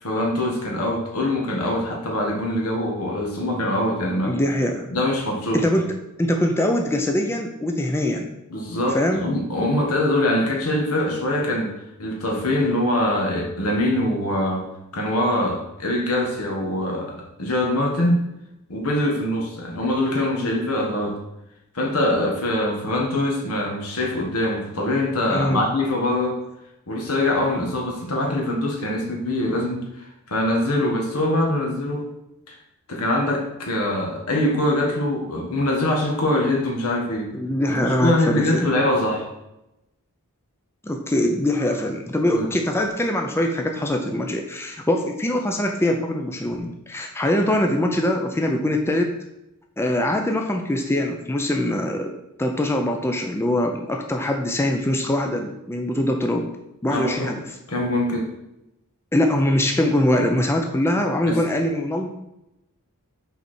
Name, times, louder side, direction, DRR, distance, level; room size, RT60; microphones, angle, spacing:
voice 1, 0.0-4.4 4.9-5.6 8.5-14.7 14.9-18.2 18.7-21.2 21.7-26.4 26.9-29.9 30.3-32.1 32.5-32.6 32.9-37.3 37.8-39.3 42.3-42.5 56.9-57.4 57.7-58.3 61.3-61.4, left 1 dB, 80° left, 0 dB, 1.6 m, -23 dB
voice 2, 4.2-4.9 5.5-5.9 6.2-8.3 8.9-9.3 25.3-25.6 37.3-38.7 40.8-49.1 49.8-52.1 52.4-56.5 56.8-57.4 59.1-62.1, left 1 dB, 10° left, 3 dB, 0.5 m, -23 dB
5.6 x 4.6 x 4.3 m, 0.89 s
head